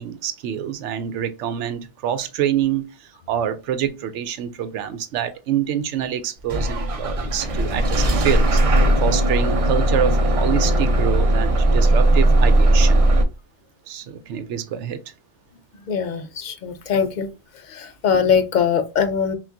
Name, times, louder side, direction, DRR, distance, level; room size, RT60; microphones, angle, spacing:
voice 1, 0.0-13.0 13.9-15.0, right 10 dB, 85° right, 0.9 m, -26 dB
Bus / Engine starting, 6.5-13.2, right 1 dB, 45° right, 0.4 m, -18 dB
voice 2, 15.9-17.3 17.7-19.3, left 7 dB, 55° left, 0.5 m, -21 dB
5.7 x 2.4 x 2.6 m
omnidirectional pair, 1.2 m